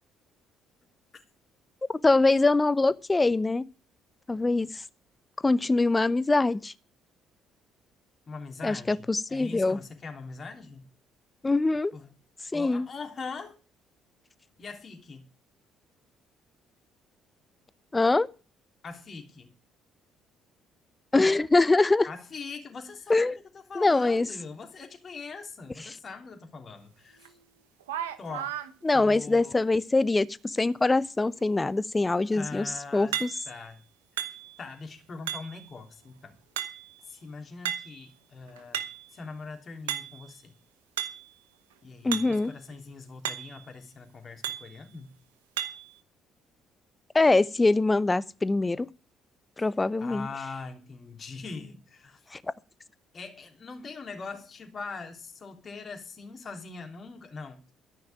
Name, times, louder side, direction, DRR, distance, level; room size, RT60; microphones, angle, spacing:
voice 1, 2.0-3.6 4.3-4.8 5.4-6.7 8.6-9.8 11.4-11.9 12.5-12.9 17.9-18.3 21.1-22.1 23.1-23.4 23.7-24.3 28.8-33.3 42.0-42.5 47.1-48.9 49.6-50.3 52.3-52.4, left 3 dB, 20° left, 0.8 m, -23 dB
voice 2, 8.3-10.9 11.9-12.1 12.5-13.6 14.6-15.3 18.8-19.5 22.1-27.4 28.2-28.6 28.9-29.6 32.3-33.2 33.5-33.8 34.6-36.4 37.0-38.9 39.1-40.6 41.8-45.1 49.6-49.7 50.0-52.3 53.1-57.7, left 4 dB, 45° left, 3.2 m, -42 dB
sound 1, 27.2-27.3 27.8-28.7 33.1-33.7 34.2-34.7 35.3-35.7 36.6-37.0 37.7-38.1 38.5-39.1 39.9-40.3 41.0-41.3 42.1-42.4 42.7-42.8 43.3-43.7 44.4-44.8 45.6-45.9, right 11 dB, 85° right, 0.9 m, -34 dB
13.5 x 5.8 x 9.0 m
hypercardioid pair, 50°, 0 cm